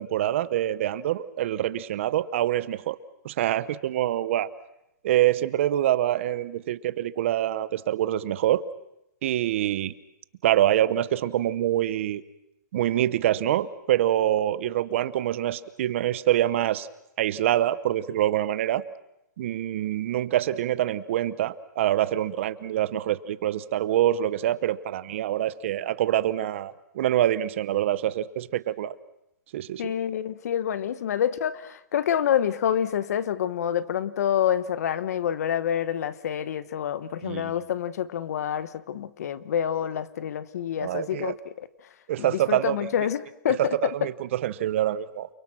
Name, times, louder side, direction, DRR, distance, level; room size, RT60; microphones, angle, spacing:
voice 1, 0.0-3.0 3.2-4.5 5.0-8.6 9.2-9.9 10.4-12.2 12.7-16.9 17.2-18.8 19.4-29.0 29.5-29.9 37.2-37.5 40.8-41.3 42.1-42.8 43.6-45.3, right 12 dB, 40° right, 0.8 m, -25 dB
voice 2, 29.8-41.7 42.2-43.9, left 9 dB, 55° left, 1.1 m, -27 dB
29.5 x 22.5 x 6.1 m
hypercardioid pair, 170°, 10 cm